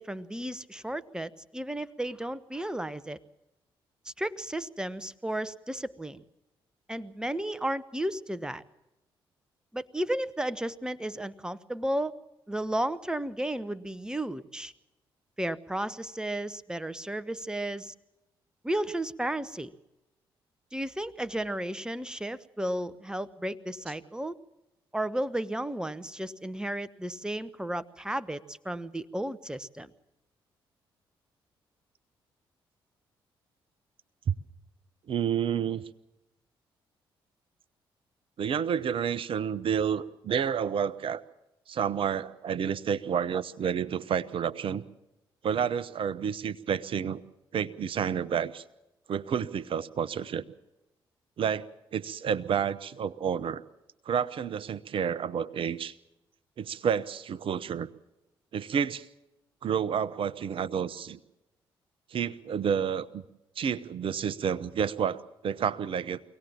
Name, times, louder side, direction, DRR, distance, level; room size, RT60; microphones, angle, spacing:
voice 1, 0.0-3.2 4.2-6.2 6.9-8.6 9.7-12.1 12.5-14.7 15.4-17.9 18.6-19.7 20.7-24.4 24.9-29.9, right 1 dB, 5° right, 15 dB, 1.0 m, -33 dB
voice 2, 35.1-35.8 38.4-41.2 41.7-44.8 45.4-47.2 47.5-48.6 49.1-50.4 51.4-53.6 54.1-55.9 56.6-57.9 58.5-59.1 59.6-61.2 62.1-63.2 63.6-66.2, right 7 dB, 45° right, 15 dB, 0.9 m, -30 dB
24.0 x 17.5 x 7.2 m, 0.93 s
figure-of-eight pair, 40°, 12 cm